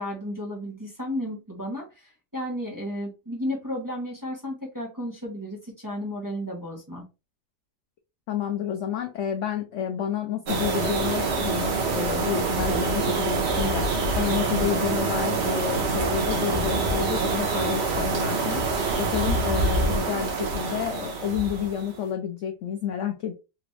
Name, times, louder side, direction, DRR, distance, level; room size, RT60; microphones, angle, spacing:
voice 1, 0.0-7.0, left 1 dB, 15° right, -3 dB, 0.9 m, -33 dB
voice 2, 8.3-13.9 14.2-18.7 19.0-23.3, left 9 dB, 70° left, 5 dB, 0.7 m, -30 dB
sound 1, 10.5-22.0, right 3 dB, 45° right, 1.0 m, -26 dB
3.8 x 2.5 x 3.1 m, 0.28 s
omnidirectional pair, 1.8 m